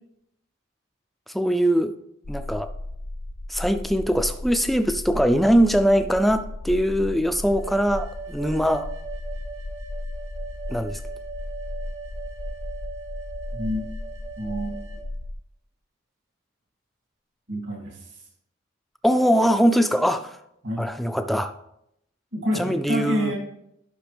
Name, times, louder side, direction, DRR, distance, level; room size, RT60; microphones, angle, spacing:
voice 1, 1.3-1.9 2.3-2.7 3.5-8.9 10.7-11.0 19.0-20.4 20.8-21.5 22.6-23.3, equal, ahead, 8 dB, 0.3 m, -22 dB
sound 1, 2.2-15.3, left 1 dB, 60° left, 0.6 m, -35 dB
sound 2, 7.5-15.1, right 4 dB, 90° right, 1.3 m, -40 dB
voice 2, 13.5-13.9 14.4-14.8 17.5-18.2 20.6-20.9 22.3-23.4, equal, 65° right, -1 dB, 2.6 m, -28 dB
11.0 x 5.9 x 3.4 m, 0.79 s
head